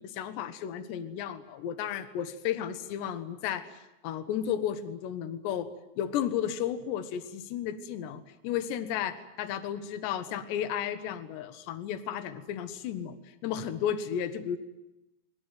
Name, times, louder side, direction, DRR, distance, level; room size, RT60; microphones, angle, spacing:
voice 1, 0.0-3.7 4.0-5.7 6.0-13.2 13.4-14.6, left 9 dB, 75° left, 12 dB, 3.5 m, -33 dB
27.5 x 22.0 x 9.4 m, 0.93 s
omnidirectional pair, 5.1 m